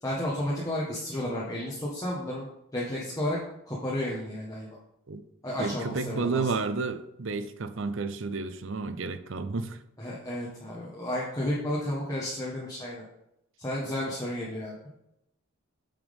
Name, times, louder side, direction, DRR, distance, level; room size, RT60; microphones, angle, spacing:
voice 1, 0.0-2.5 2.7-3.4 3.7-4.7 5.4-6.5 10.0-13.0 13.6-14.7, left 1 dB, 15° left, -5 dB, 1.4 m, -32 dB
voice 2, 5.6-9.8, right 4 dB, 65° right, 12 dB, 0.6 m, -31 dB
8.8 x 6.1 x 3.6 m, 0.80 s
head